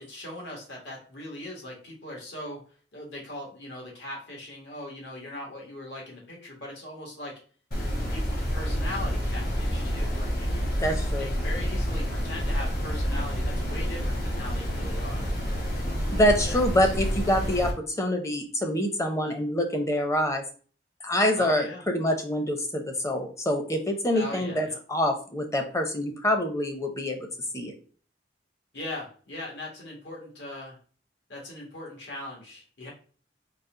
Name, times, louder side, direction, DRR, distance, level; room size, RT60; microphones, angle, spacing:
voice 1, 0.0-2.6 2.9-7.4 8.1-15.4 16.4-16.9 21.3-21.8 24.1-24.8 28.7-30.8 31.3-32.9, left 1 dB, 75° left, -2 dB, 1.6 m, -40 dB
sound 1, 7.7-17.7, equal, 50° left, 1.3 m, -28 dB
voice 2, 10.8-11.3 16.1-20.4 21.0-27.2 27.5-27.7, left 1 dB, 15° left, 4 dB, 0.5 m, -26 dB
4.1 x 2.3 x 3.7 m, 0.41 s
head